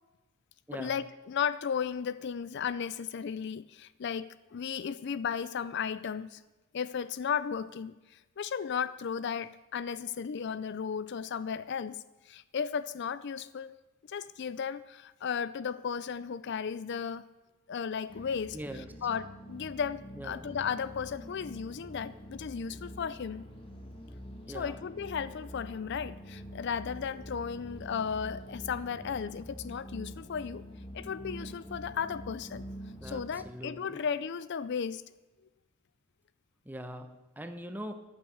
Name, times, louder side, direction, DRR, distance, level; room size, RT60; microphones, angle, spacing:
voice 1, 0.7-6.4 6.7-8.0 8.4-13.7 14.1-17.3 17.7-23.5 24.5-30.6 30.9-32.6 33.0-35.0, left 7 dB, 55° left, 16 dB, 0.4 m, -35 dB
sound 1, 18.1-33.5, equal, 25° left, 2.2 m, -46 dB
voice 2, 18.5-18.9 20.2-20.5 24.5-24.8 33.0-34.0 36.6-37.9, right 1 dB, 10° right, 7 dB, 1.0 m, -42 dB
14.0 x 8.9 x 7.9 m, 1.1 s
head